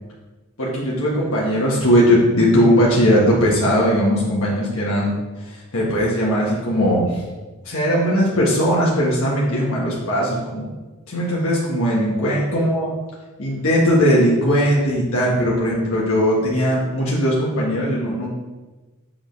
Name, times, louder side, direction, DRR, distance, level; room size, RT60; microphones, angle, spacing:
voice 1, 0.6-5.1 5.4-7.2 7.6-10.7 11.1-12.9 13.4-18.3, equal, 65° left, -4 dB, 1.4 m, -19 dB
7.2 x 3.9 x 5.3 m, 1.2 s
head